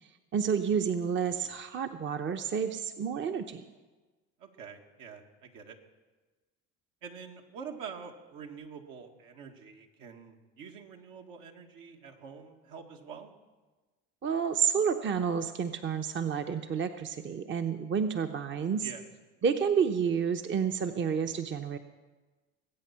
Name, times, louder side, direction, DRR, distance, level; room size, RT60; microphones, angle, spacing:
voice 1, 0.3-3.6 14.2-18.9 19.4-21.8, right 7 dB, 35° right, 7 dB, 0.8 m, -30 dB
voice 2, 4.4-5.8 7.0-13.3 18.8-19.0, right 6 dB, 70° right, 2 dB, 1.9 m, -46 dB
20.5 x 8.5 x 5.8 m, 1.3 s
supercardioid pair, 80°, 34 cm